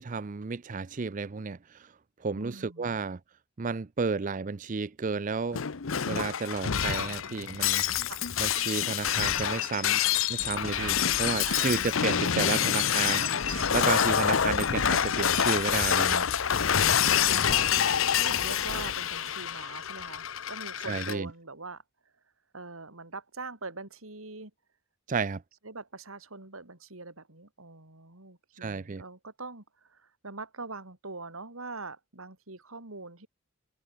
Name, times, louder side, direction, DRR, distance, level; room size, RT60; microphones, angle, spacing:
voice 1, 0.0-1.9 2.2-3.2 3.6-5.6 6.1-7.8 8.4-10.0 10.3-16.2 20.8-21.3 25.1-25.4 28.6-29.0, right 4 dB, 40° right, 0.5 m, -32 dB
voice 2, 2.3-3.0 8.1-8.2 11.0-12.0 17.1-21.8 22.5-24.5 25.6-33.3, right 3 dB, 80° right, 3.9 m, -43 dB
Shatter, 5.5-21.1, left 8 dB, 70° left, 0.8 m, -27 dB
sound 1, 8.1-8.4 10.2-12.3 12.7-13.7, right 6 dB, 65° right, 1.4 m, -42 dB
head